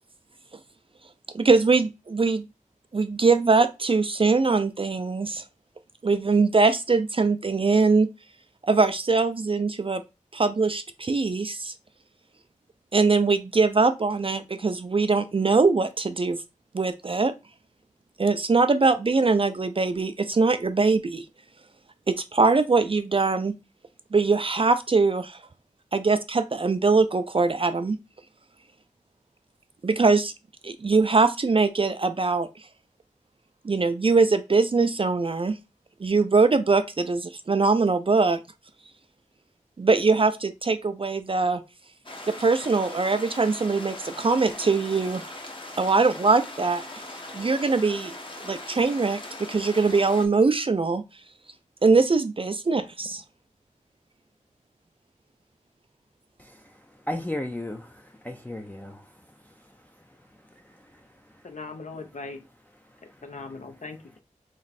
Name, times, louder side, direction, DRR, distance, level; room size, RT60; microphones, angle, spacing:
voice 1, 1.3-2.4 2.9-5.4 6.0-8.1 8.6-10.0 10.3-11.7 12.9-16.4 16.7-17.3 18.2-21.2 22.1-23.5 24.1-25.4 25.9-28.0 29.8-30.3 30.6-32.5 33.6-35.6 36.0-38.4 39.8-41.6 42.3-45.2 45.8-46.8 47.3-48.1 48.4-51.0 51.8-53.2, right 4 dB, 45° right, 0.4 m, -22 dB
sound 1, 42.0-50.3, left 2 dB, 40° left, 1.0 m, -40 dB
voice 2, 56.4-56.8 57.1-59.1 59.4-59.5 60.6-61.1 61.3-61.4 63.2-63.3, left 1 dB, 10° left, 0.5 m, -35 dB
voice 3, 61.4-62.4 63.2-64.2, left 3 dB, 70° left, 0.9 m, -39 dB
3.4 x 3.1 x 4.1 m
wide cardioid pair, 70°, 13 cm